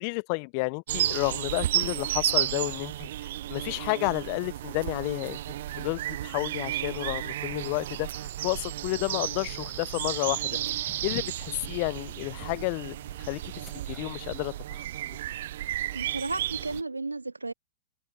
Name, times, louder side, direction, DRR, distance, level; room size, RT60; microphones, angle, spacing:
voice 1, 0.0-3.1 3.5-5.4 5.8-10.5 11.0-13.4 13.9-15.2, left 35 dB, 45° left, 0.6 m, -31 dB
sound 1, 0.9-16.8, right 13 dB, 60° right, 0.7 m, -33 dB
sound 2, 8.8-14.8, left 4 dB, 10° left, 5.7 m, -54 dB
voice 2, 15.9-17.5, right 3 dB, 85° right, 0.4 m, -33 dB
figure-of-eight pair, 105°, 0 cm